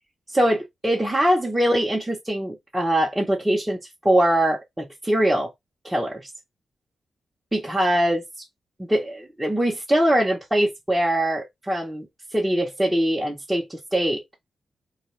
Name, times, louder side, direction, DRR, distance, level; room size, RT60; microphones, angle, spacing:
voice 1, 0.3-3.8 4.0-5.5 5.8-6.3 7.5-8.2 8.8-12.1 12.3-14.2, right 1 dB, 10° right, 0.9 m, -22 dB
2.3 x 2.3 x 3.0 m
cardioid pair, 70°, 0 cm